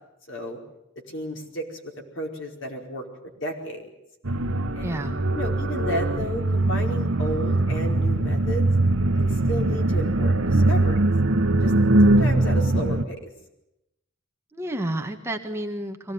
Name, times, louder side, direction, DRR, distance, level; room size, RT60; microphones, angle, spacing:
voice 1, 0.3-0.6 1.1-3.9 4.7-8.7 9.2-11.0 11.6-11.7 12.0-13.3, equal, 65° left, 1 dB, 4.9 m, -33 dB
sound 1, 4.2-13.1, right 2 dB, 75° right, 1.2 m, -21 dB
voice 2, 4.8-5.1 14.5-16.1, right 1 dB, 15° right, 4 dB, 1.6 m, -30 dB
24.0 x 18.0 x 9.4 m, 0.87 s
head